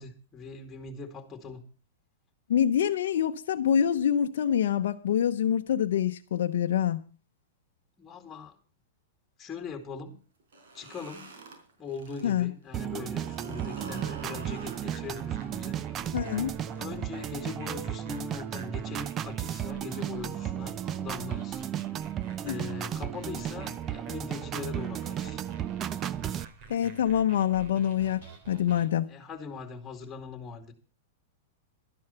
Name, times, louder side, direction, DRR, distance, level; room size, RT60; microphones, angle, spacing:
voice 1, 0.0-1.6 8.0-8.6 9.4-10.2 10.7-11.3 11.8-16.2 16.8-21.6 22.4-25.4 29.1-30.7, left 5 dB, 20° left, 2.4 m, -41 dB
voice 2, 2.5-7.0 12.2-12.5 16.1-16.5 22.4-22.6 26.7-29.1, left 9 dB, 75° left, 0.8 m, -26 dB
sound 1, 10.4-12.3 12.7-17.4, right 3 dB, 75° right, 4.4 m, -47 dB
sound 2, 12.7-26.4, right 10 dB, 30° right, 0.6 m, -34 dB
sound 3, 14.1-28.9, right 5 dB, 50° right, 3.1 m, -48 dB
12.5 x 10.5 x 5.7 m
hypercardioid pair, 115°, 0 cm